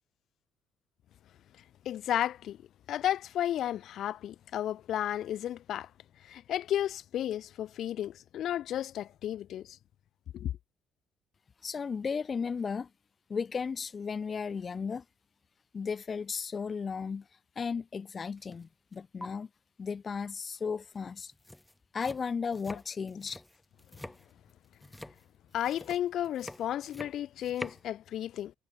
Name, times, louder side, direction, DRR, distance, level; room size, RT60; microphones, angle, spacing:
voice 1, 1.8-2.6 2.9-5.9 6.2-9.8 10.3-10.5 24.0-24.1 25.5-28.5, left 11 dB, 65° left, 0.9 m, -33 dB
voice 2, 11.6-12.9 13.3-15.0 15.7-17.2 17.6-19.5 19.8-21.3 21.9-23.4, left 5 dB, 30° left, 2.2 m, -35 dB
sound 1, 18.4-18.7 18.9-19.3 20.9-21.0 21.3-27.9, left 1 dB, 5° left, 1.0 m, -46 dB
cardioid pair, 120°, 0 cm